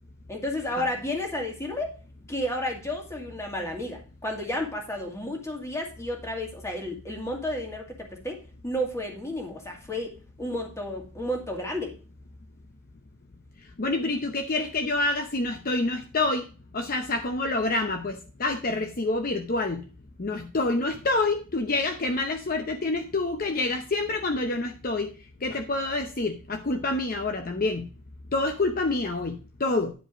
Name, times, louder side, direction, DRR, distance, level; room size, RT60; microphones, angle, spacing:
voice 1, 0.3-1.9 2.3-8.4 8.6-10.1 10.4-11.9, left 1 dB, 15° left, 1 dB, 2.2 m, -32 dB
voice 2, 13.8-16.4 16.7-19.8 20.2-25.1 25.4-27.9 28.3-29.9, left 2 dB, 45° left, 5 dB, 0.7 m, -27 dB
10.0 x 5.0 x 5.0 m, 0.36 s
head